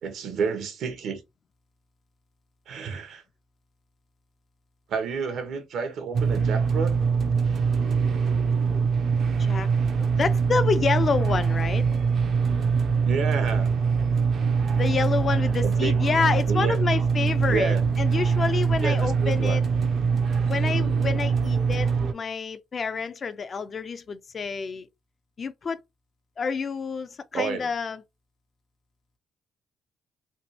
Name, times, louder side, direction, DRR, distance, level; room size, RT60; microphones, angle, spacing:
voice 1, 0.0-1.2 2.7-3.2 4.9-7.0 13.0-13.7 15.6-16.1 16.5-16.8 17.5-17.8 18.8-19.6 27.3-27.7, right 5 dB, 75° right, 1.0 m, -30 dB
sound 1, 6.1-22.1, right 5 dB, 60° right, 0.6 m, -23 dB
voice 2, 10.0-11.8 14.7-19.6 20.5-24.9 25.4-25.8 26.4-28.0, left 5 dB, 45° left, 0.5 m, -28 dB
3.4 x 2.4 x 2.8 m
cardioid pair, 90°, 0 cm